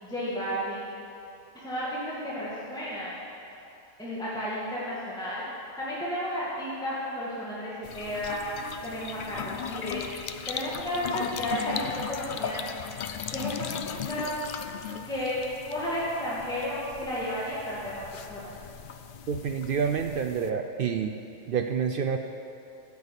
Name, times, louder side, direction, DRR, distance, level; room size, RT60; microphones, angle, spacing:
voice 1, 0.0-0.9 1.6-3.2 4.0-5.5 5.8-8.5 8.8-10.1 10.5-12.7 13.3-14.3 15.0-18.5, equal, 5° left, -8 dB, 1.8 m, -33 dB
sound 1, 7.8-20.5, left 7 dB, 60° left, 0.5 m, -37 dB
voice 2, 19.3-21.2 21.5-22.2, right 7 dB, 65° right, 5 dB, 0.5 m, -28 dB
9.6 x 6.9 x 8.1 m, 2.8 s
omnidirectional pair, 1.3 m